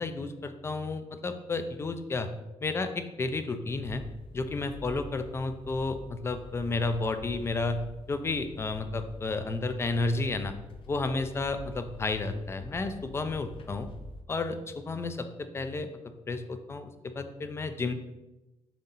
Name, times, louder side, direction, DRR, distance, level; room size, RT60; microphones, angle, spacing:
voice 1, 0.0-2.3 2.6-4.0 4.3-7.8 8.1-10.5 10.9-13.9 14.3-14.6 14.8-15.9 16.3-17.9, left 3 dB, 25° left, 9 dB, 0.4 m, -32 dB
sound 1, 3.7-14.2, left 1 dB, 55° left, 0.7 m, -47 dB
7.3 x 2.7 x 5.6 m, 1.0 s
cardioid pair, 170°, 11 cm